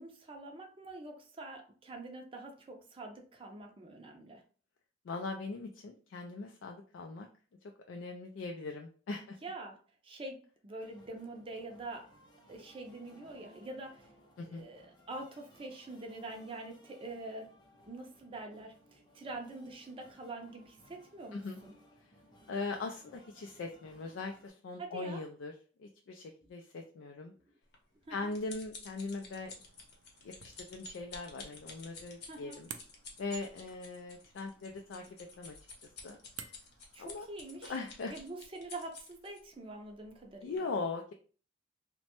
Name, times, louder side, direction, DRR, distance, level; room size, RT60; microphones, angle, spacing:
voice 1, 0.0-4.4 9.4-9.8 10.0-12.1 12.5-14.1 14.4-17.5 17.9-21.7 24.8-25.2 28.1-28.3 32.3-32.6 36.9-40.7, right 2 dB, 30° right, 3 dB, 0.5 m, -45 dB
voice 2, 5.1-7.3 7.9-9.4 14.4-14.7 21.3-21.6 22.5-25.5 25.8-27.3 28.1-29.5 30.2-32.7 33.2-35.0 35.4-35.5 36.0-36.2 37.0-37.3 37.7-38.1 40.4-41.1, left 3 dB, 85° left, 3 dB, 0.3 m, -40 dB
sound 1, 10.8-24.5, equal, 25° left, 0.6 m, -62 dB
sound 2, 27.7-39.4 40.0-40.2 40.6-40.7, left 3 dB, 55° left, 0.8 m, -51 dB
sound 3, 29.2-38.4, right 8 dB, 85° right, 0.4 m, -55 dB
3.0 x 2.1 x 2.9 m, 0.39 s
head